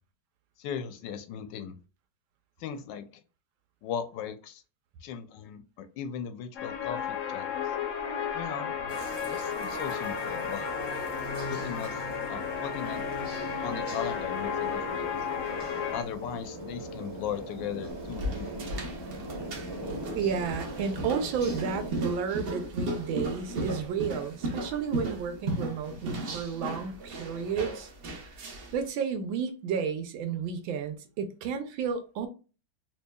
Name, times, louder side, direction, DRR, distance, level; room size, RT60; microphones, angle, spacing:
voice 1, 0.6-1.8 2.6-3.1 3.8-4.6 5.0-7.5 8.3-10.7 11.5-11.9 12.3-13.0 13.6-15.1 15.9-18.7, left 8 dB, 75° left, 1.2 m, -38 dB
sound 1, 6.6-16.0, left 7 dB, 60° left, 0.8 m, -33 dB
sound 2, 8.9-21.9, right 1 dB, 10° right, 1.6 m, -40 dB
sound 3, 17.9-28.8, right 1 dB, 55° right, 0.6 m, -36 dB
voice 2, 20.2-27.9 28.7-32.3, right 6 dB, 90° right, 1.5 m, -32 dB
4.4 x 2.8 x 2.2 m
omnidirectional pair, 2.1 m